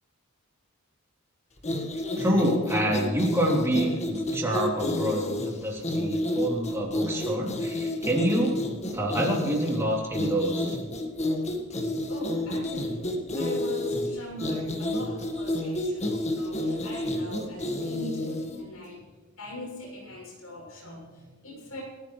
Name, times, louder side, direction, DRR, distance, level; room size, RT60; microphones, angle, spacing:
sound 1, 1.6-18.6, left 1 dB, 30° left, 1.7 m, -30 dB
voice 1, 2.2-8.6 8.9-10.8, right 1 dB, 10° right, -3 dB, 3.6 m, -27 dB
voice 2, 11.4-19.0 19.4-21.8, left 1 dB, 80° left, -2 dB, 6.8 m, -41 dB
30.0 x 14.0 x 3.3 m, 1.4 s
head